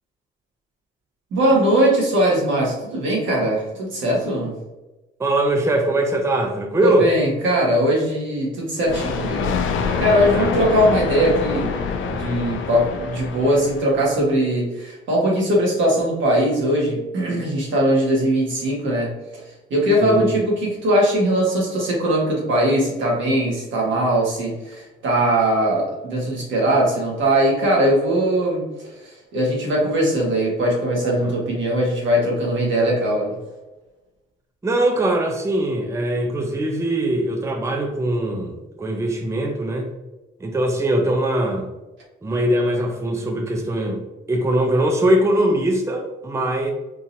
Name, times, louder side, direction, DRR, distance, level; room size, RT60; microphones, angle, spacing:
voice 1, 1.3-4.5 6.8-9.5 10.0-11.7 12.0-19.1 19.7-28.6 29.0-33.4, right 1 dB, 75° right, -3 dB, 1.5 m, -20 dB
voice 2, 5.2-7.1 10.3-10.5 20.0-20.3 31.2-31.3 34.6-39.9 40.4-41.7 42.2-44.0 44.3-46.7, right 1 dB, 15° right, 2 dB, 0.5 m, -21 dB
Thunder, 8.9-14.2, left 5 dB, 75° left, 0.5 m, -26 dB
3.7 x 2.8 x 2.7 m, 1.1 s
cardioid pair, 90°, 20 cm